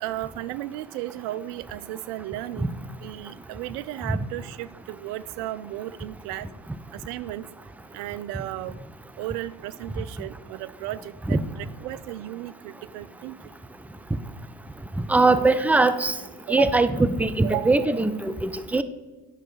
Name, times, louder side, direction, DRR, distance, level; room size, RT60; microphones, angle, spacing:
voice 1, 0.0-2.7 3.0-6.5 6.9-7.5 7.9-8.8 9.2-13.4 16.5-16.8 17.4-17.8, right 15 dB, 70° right, 16 dB, 0.6 m, -34 dB
voice 2, 15.1-16.1 16.5-18.8, right 3 dB, 5° right, 11 dB, 0.4 m, -21 dB
10.5 x 6.0 x 4.8 m, 1.2 s
hypercardioid pair, 70°, 49 cm